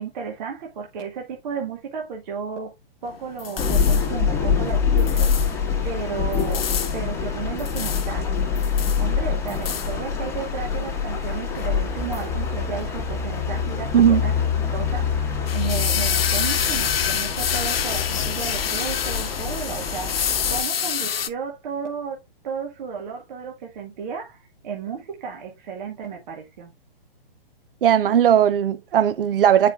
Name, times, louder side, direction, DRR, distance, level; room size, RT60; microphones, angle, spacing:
voice 1, 0.0-2.7 3.0-6.6 6.9-8.3 9.0-15.2 15.5-20.1 20.5-22.2 22.4-26.7, right 6 dB, 50° right, 1.7 m, -33 dB
sound 1, 3.0-21.3, left 8 dB, 75° left, 0.9 m, -30 dB
sound 2, 3.6-20.6, left 6 dB, 10° left, 1.6 m, -25 dB
voice 2, 27.8-29.7, right 9 dB, 65° right, 0.6 m, -17 dB
8.9 x 5.0 x 2.4 m
hypercardioid pair, 135°, 30 cm